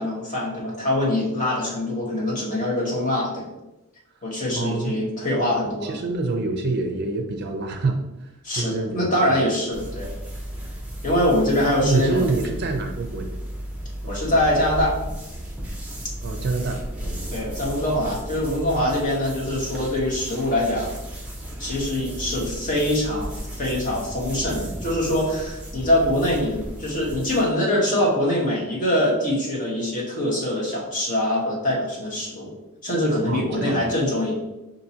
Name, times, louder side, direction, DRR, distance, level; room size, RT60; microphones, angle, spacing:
voice 1, 0.0-3.4 4.2-6.0 8.4-10.1 11.0-12.3 14.1-15.0 17.3-20.9 21.6-32.5 32.8-34.4, left 1 dB, 35° left, -4 dB, 1.2 m, -23 dB
voice 2, 4.5-4.9 5.4-8.0 8.6-9.3 11.8-13.3 14.0-14.1 16.2-17.3 33.3-33.8, right 3 dB, 50° right, 5 dB, 0.4 m, -26 dB
sound 1, 9.7-27.5, equal, 5° right, 0.7 m, -34 dB
5.5 x 2.7 x 2.8 m, 0.99 s
head